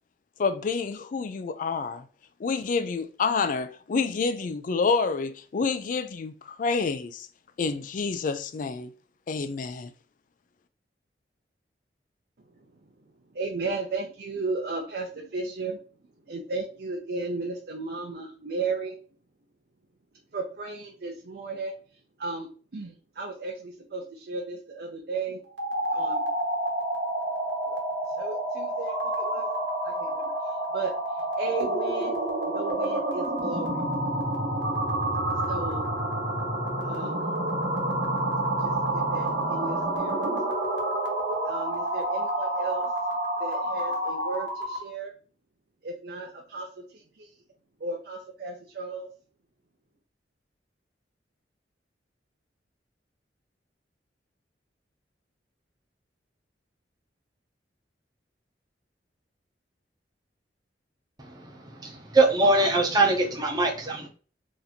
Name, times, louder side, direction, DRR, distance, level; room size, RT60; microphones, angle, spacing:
voice 1, 0.4-2.0 2.4-7.3 7.6-8.9 9.3-9.9, left 4 dB, 50° left, 0.4 m, -28 dB
voice 2, 13.3-15.8 16.3-18.9 20.3-21.7 22.2-25.4 25.9-26.3 27.7-27.8 28.2-29.5 29.8-30.3 30.7-30.9 31.4-32.2 32.5-33.8 35.5-35.9 36.8-37.2 38.6-40.3 41.5-42.9 43.4-45.1 45.8-46.7 47.2-47.3 47.8-49.1, right 3 dB, 60° right, 0.6 m, -34 dB
sound 1, 25.5-44.9, right 1 dB, 85° right, 1.1 m, -28 dB
voice 3, 61.8-64.1, right 2 dB, 25° right, 0.7 m, -22 dB
2.9 x 2.6 x 4.0 m
head